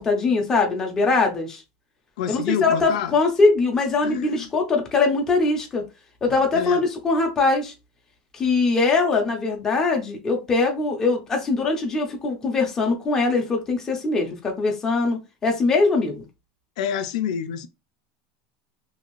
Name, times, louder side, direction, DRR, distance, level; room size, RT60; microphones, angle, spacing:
voice 1, 0.0-1.6 2.3-5.9 6.2-7.7 8.3-16.3, left 3 dB, 15° left, 0.5 m, -22 dB
voice 2, 2.2-3.2 4.0-4.5 6.3-6.8 16.8-17.7, left 9 dB, 85° left, 0.4 m, -28 dB
2.6 x 2.4 x 3.0 m
supercardioid pair, 180°, 4 cm